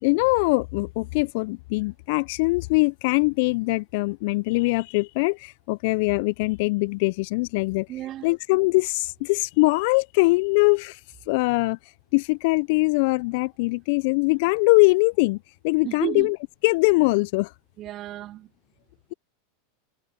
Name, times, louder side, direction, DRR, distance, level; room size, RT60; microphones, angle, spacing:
voice 1, 0.0-7.9 8.2-11.0 11.3-11.8 12.1-15.4 15.6-16.4 16.6-17.5, left 26 dB, 60° left, 0.6 m, -22 dB
voice 2, 7.9-8.3 15.8-16.3 17.8-18.5, right 14 dB, 40° right, 0.6 m, -32 dB
hypercardioid pair, 90°, 0 cm